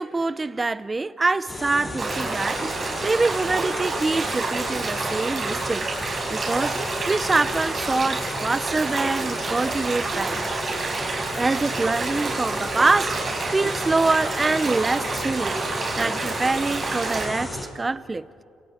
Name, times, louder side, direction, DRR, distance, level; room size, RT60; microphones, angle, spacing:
voice 1, 0.0-5.9 6.3-6.8 7.1-10.4 11.3-15.6 16.0-18.3, right 3 dB, 25° right, 0.8 m, -25 dB
sound 1, 1.5-17.7, left 1 dB, 25° left, 7.8 m, -34 dB
sound 2, 2.0-17.2, right 3 dB, 45° right, 5.9 m, -29 dB
30.0 x 28.5 x 4.4 m
cardioid pair, 90°, 0 cm